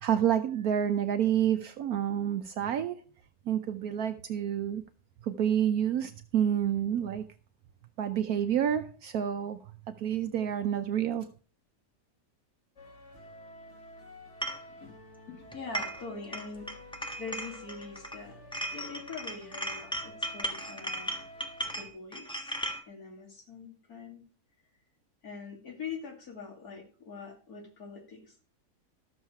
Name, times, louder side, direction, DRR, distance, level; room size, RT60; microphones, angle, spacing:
voice 1, 0.0-3.0 3.5-4.8 5.2-7.2 8.0-9.6 10.0-11.3, right 9 dB, 70° right, 8 dB, 1.1 m, -28 dB
sound 1, 12.8-21.9, left 1 dB, 45° left, 2.0 m, -51 dB
sound 2, 14.4-14.6 15.5-16.1 16.3-18.2 18.5-22.8, right 1 dB, 5° left, 1.0 m, -36 dB
voice 2, 15.3-18.4 18.7-21.3 21.8-24.2 25.2-28.4, left 4 dB, 65° left, 1 dB, 3.0 m, -44 dB
13.0 x 7.2 x 4.6 m, 0.38 s
omnidirectional pair, 1.7 m